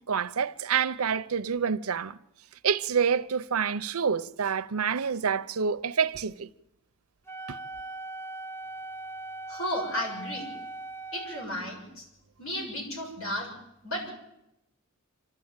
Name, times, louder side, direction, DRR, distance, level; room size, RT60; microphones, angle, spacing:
voice 1, 0.1-2.2 2.6-6.5 7.5-7.6, right 6 dB, 80° right, 0.7 m, -27 dB
Wind instrument woodwind instrument, 7.3-11.5, right 2 dB, 10° left, 0.9 m, -40 dB
voice 2, 9.5-10.5 11.1-12.1 12.4-13.5 13.8-14.1, left 1 dB, 65° left, 7.1 m, -33 dB
26.5 x 12.0 x 8.9 m
head